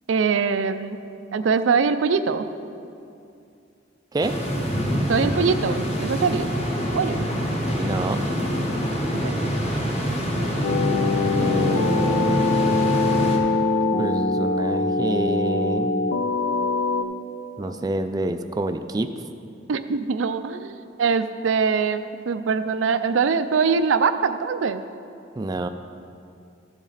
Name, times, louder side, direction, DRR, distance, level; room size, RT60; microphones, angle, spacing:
voice 1, 0.1-1.0 1.3-2.5 5.1-6.5 6.9-7.2 9.2-9.4 19.7-24.8, right 5 dB, 85° right, 10 dB, 0.4 m, -23 dB
sound 1, 4.2-13.4, equal, 35° left, 1.2 m, -25 dB
voice 2, 7.8-8.2 11.3-12.5 14.0-15.9 17.6-19.1 25.4-25.7, right 2 dB, 20° right, 8 dB, 0.3 m, -27 dB
sound 2, 10.6-17.0, left 3 dB, 65° left, 0.6 m, -23 dB
13.0 x 7.2 x 4.0 m, 2.5 s
head